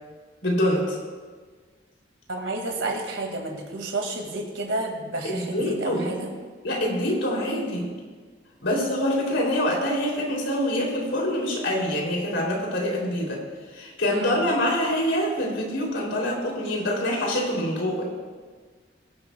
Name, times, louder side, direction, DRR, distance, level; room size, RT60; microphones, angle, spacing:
voice 1, 0.4-1.0 5.2-6.1 6.6-7.9 8.6-13.4 13.7-18.1, left 1 dB, 85° left, -2 dB, 3.1 m, -25 dB
voice 2, 2.3-6.3 14.1-14.4, right 2 dB, 80° right, 2 dB, 2.2 m, -30 dB
22.0 x 11.0 x 2.3 m, 1.5 s
head